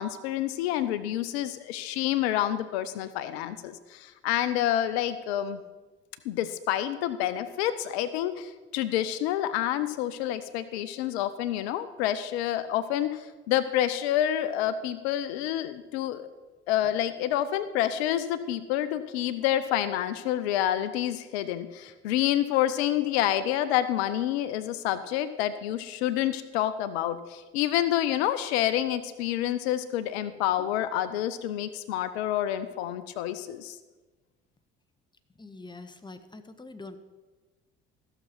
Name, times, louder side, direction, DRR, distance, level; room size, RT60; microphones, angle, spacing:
voice 1, 0.0-5.6 6.2-16.3 16.7-33.8, left 12 dB, 75° left, 14 dB, 0.6 m, -28 dB
voice 2, 35.4-37.0, left 3 dB, 15° left, 10 dB, 1.1 m, -44 dB
15.0 x 6.7 x 5.9 m, 1.2 s
hypercardioid pair, 55°, 32 cm